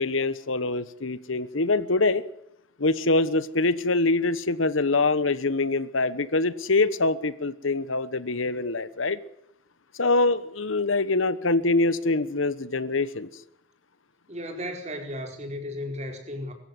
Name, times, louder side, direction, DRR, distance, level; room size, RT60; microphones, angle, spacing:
voice 1, 0.0-2.2 2.8-9.2 10.0-13.3, left 3 dB, 85° left, 16 dB, 1.2 m, -24 dB
voice 2, 14.3-16.5, left 1 dB, 35° right, 5 dB, 4.5 m, -34 dB
24.0 x 14.0 x 7.9 m, 0.79 s
head